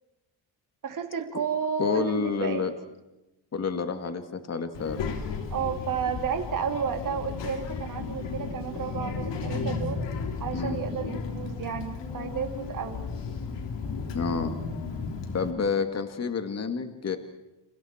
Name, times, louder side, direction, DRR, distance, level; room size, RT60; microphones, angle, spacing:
voice 1, 0.8-2.6 5.5-10.0 10.4-13.0, right 7 dB, 50° right, 4 dB, 2.9 m, -32 dB
voice 2, 1.8-2.7 3.5-5.0 10.5-10.8 14.1-14.6 15.3-17.2, left 5 dB, 35° left, 7 dB, 2.2 m, -29 dB
Child speech kid speaking, 4.7-15.5, left 5 dB, 85° left, 3.4 m, -34 dB
30.0 x 28.5 x 4.5 m, 0.98 s
cardioid pair, 140°, 42 cm